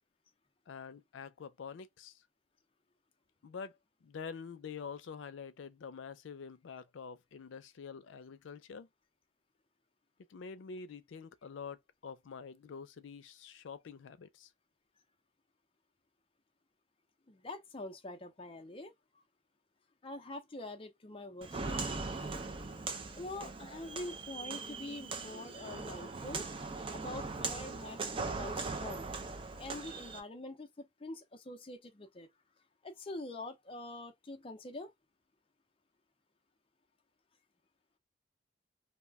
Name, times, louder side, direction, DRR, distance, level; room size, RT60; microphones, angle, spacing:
voice 1, 0.7-2.2 3.4-8.9 10.3-14.5, left 6 dB, 90° left, 0.4 m, -46 dB
voice 2, 17.3-18.9 20.0-21.8 23.2-26.5 26.9-29.1 29.6-32.3 32.8-34.9, left 2 dB, 30° left, 0.5 m, -45 dB
Walk footsteps, 21.4-30.2, right 3 dB, 30° right, 0.4 m, -40 dB
2.3 x 2.1 x 3.4 m
head